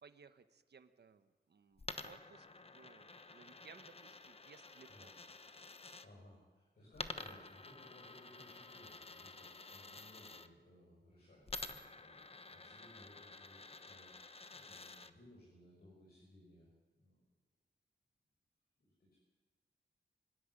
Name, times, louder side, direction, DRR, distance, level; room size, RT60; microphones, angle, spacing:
voice 1, 0.0-2.5 2.7-5.2, right 5 dB, 70° right, 10 dB, 1.2 m, -61 dB
Coin (dropping), 1.8-6.1 6.9-10.5 11.5-15.1, left 3 dB, 35° left, 1.0 m, -50 dB
voice 2, 6.0-17.3 18.8-19.2, left 1 dB, 60° left, -4 dB, 6.8 m, -62 dB
25.0 x 13.0 x 9.9 m, 1.3 s
wide cardioid pair, 135°, 18 cm